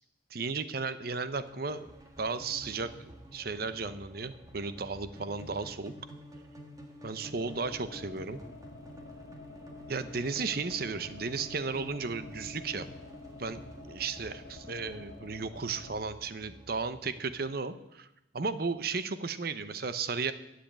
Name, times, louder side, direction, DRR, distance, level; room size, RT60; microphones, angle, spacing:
voice 1, 0.3-2.9 3.3-5.9 7.0-8.4 9.9-12.9 13.4-13.6 13.9-18.1 18.3-20.3, right 4 dB, 50° right, 13 dB, 0.8 m, -34 dB
sound 1, 1.5-17.5, equal, 20° right, 1.8 m, -50 dB
sound 2, 7.2-15.9, left 3 dB, 75° left, 1.2 m, -50 dB
12.0 x 7.8 x 8.6 m, 0.89 s
head